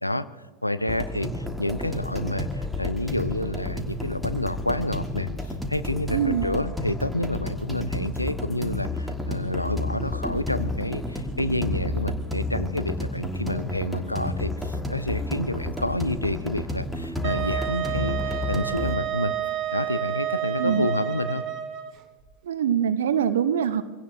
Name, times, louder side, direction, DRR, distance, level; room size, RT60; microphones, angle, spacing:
voice 1, 0.6-5.3 5.7-19.3 19.7-21.4, left 1 dB, 85° left, 13 dB, 0.6 m, -29 dB
sound 1, 0.9-19.0, left 2 dB, ahead, 1.5 m, -31 dB
voice 2, 6.1-6.5 20.6-20.9 22.4-23.8, right 8 dB, 60° right, 12 dB, 0.7 m, -23 dB
Wind instrument woodwind instrument, 17.2-21.9, right 11 dB, 35° right, 1.1 m, -30 dB
24.5 x 17.0 x 2.6 m, 1.3 s
figure-of-eight pair, 90°, 0 cm